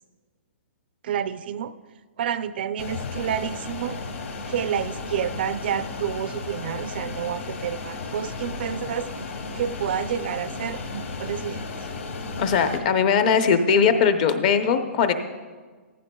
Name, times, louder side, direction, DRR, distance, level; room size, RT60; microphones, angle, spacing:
voice 1, 1.0-1.7 2.2-4.0 4.5-9.1 9.5-11.7, right 9 dB, 45° right, 13 dB, 0.4 m, -29 dB
Fixed-wing aircraft airplane, 2.8-12.8, left 3 dB, 75° left, 2.0 m, -34 dB
voice 2, 12.4-15.1, left 6 dB, 30° left, 8 dB, 0.7 m, -20 dB
15.0 x 14.5 x 2.3 m, 1.4 s
hypercardioid pair, 160°, 7 cm